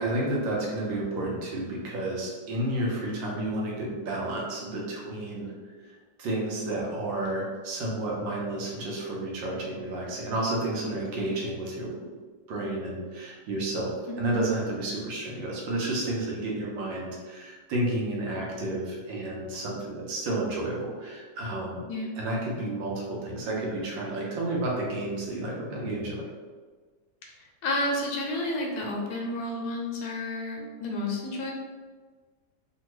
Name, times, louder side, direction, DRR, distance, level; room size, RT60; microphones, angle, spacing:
voice 1, 0.0-5.5 6.2-11.9 12.5-21.8 22.2-26.3, right 1 dB, 85° right, -3 dB, 1.5 m, -31 dB
voice 2, 27.6-31.5, left 1 dB, 70° left, 0 dB, 1.0 m, -31 dB
3.6 x 2.2 x 3.0 m, 1.4 s
omnidirectional pair, 2.0 m